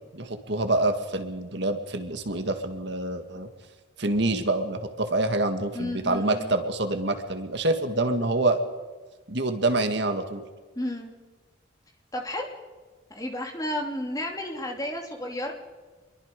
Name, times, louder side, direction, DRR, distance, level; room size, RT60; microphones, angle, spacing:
voice 1, 0.1-3.5 4.0-8.6 9.3-10.4, right 2 dB, 60° right, 7 dB, 2.0 m, -26 dB
voice 2, 5.7-6.6 10.7-11.1 12.1-12.5 13.1-15.5, left 1 dB, 20° left, 2 dB, 2.8 m, -32 dB
26.0 x 22.5 x 5.3 m, 1.3 s
head